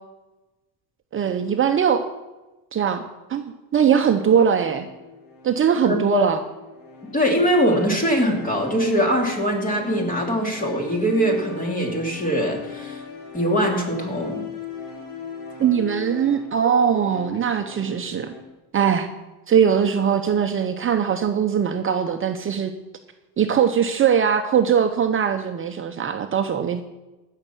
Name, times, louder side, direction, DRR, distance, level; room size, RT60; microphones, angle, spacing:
voice 1, 1.1-2.1 2.7-3.0 3.3-4.9 5.4-6.4 15.6-18.3 18.7-19.1 19.5-22.7 23.4-26.8, right 7 dB, 35° right, 6 dB, 0.8 m, -21 dB
sound 1, 4.5-18.4, left 6 dB, 85° left, 3.4 m, -39 dB
voice 2, 5.8-6.3 7.1-13.0 13.3-14.4, equal, 20° left, 1 dB, 2.8 m, -22 dB
15.5 x 6.7 x 6.1 m, 1.1 s
cardioid pair, 115°, 37 cm